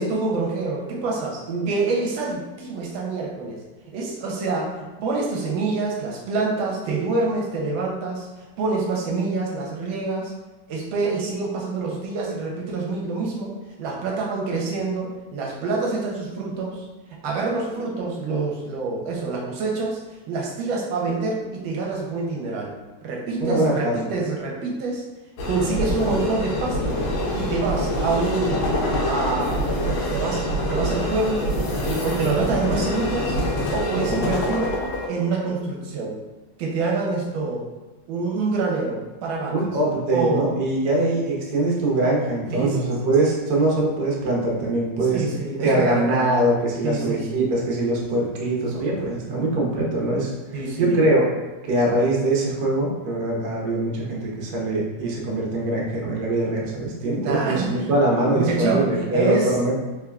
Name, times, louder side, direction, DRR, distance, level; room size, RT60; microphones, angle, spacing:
voice 1, 0.0-1.4 1.7-3.6 3.9-4.7 5.0-8.3 8.6-10.3 10.7-13.5 13.8-16.8 17.2-20.0 20.3-22.7 23.0-25.0 25.5-27.0 27.3-28.6 29.0-31.5 31.8-33.4 33.7-34.7 35.1-36.2 36.6-37.6 38.1-39.7 40.1-40.5 42.5-43.1 45.0-46.3 46.8-47.5 50.5-51.0 57.2-57.9 58.3-59.5, right 3 dB, 80° right, -2 dB, 1.4 m, -26 dB
voice 2, 23.4-23.9 39.5-45.2 45.6-50.3 50.8-51.3 51.7-59.8, right 1 dB, 60° right, -3 dB, 1.2 m, -22 dB
sound 1, 25.4-35.1, left 1 dB, 80° left, 1.4 m, -25 dB
3.5 x 3.3 x 2.3 m, 1.2 s
omnidirectional pair, 2.1 m